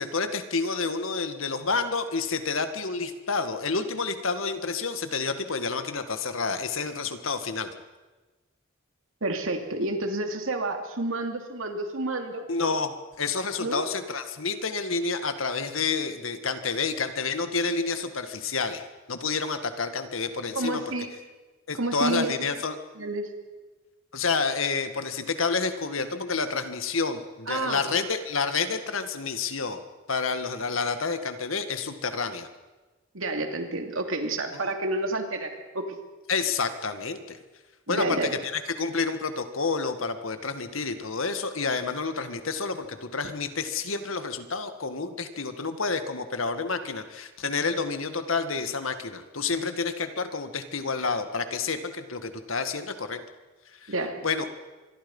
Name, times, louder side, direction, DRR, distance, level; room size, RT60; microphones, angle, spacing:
voice 1, 0.0-7.7 12.5-20.8 21.7-22.8 24.1-29.8 30.1-32.5 34.6-34.7 36.3-37.4 37.9-53.2 53.8-53.9 54.2-54.5, left 4 dB, 75° left, 9 dB, 1.8 m, -29 dB
voice 2, 9.2-12.5 13.6-13.8 20.5-21.1 21.8-22.3 23.0-23.3 27.5-28.0 33.1-36.0 37.9-38.3 53.9-54.2, right 2 dB, 75° right, 5 dB, 2.8 m, -29 dB
26.0 x 22.5 x 5.5 m, 1.2 s
head